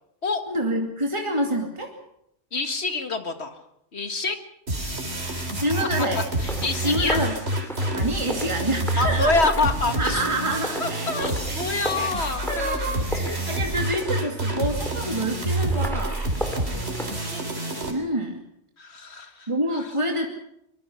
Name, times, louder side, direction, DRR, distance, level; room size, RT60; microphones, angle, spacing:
voice 1, 0.5-1.9 5.6-6.2 6.8-7.4 7.9-9.7 9.9-11.1 11.5-11.6 12.0-12.1 12.5-16.2 17.9-18.4 19.5-20.3, right 1 dB, 25° right, 1 dB, 2.6 m, -27 dB
voice 2, 2.5-3.6 3.9-4.4 5.2-5.3 6.1-7.2 9.0-10.2 10.8-13.4 16.7-17.5 18.8-19.9, left 3 dB, 65° left, 7 dB, 2.2 m, -27 dB
sound 1, 4.7-17.9, right 1 dB, 65° right, 4.0 m, -28 dB
sound 2, 6.4-17.1, equal, ahead, 3.1 m, -37 dB
24.0 x 22.5 x 5.8 m, 0.76 s
omnidirectional pair, 1.2 m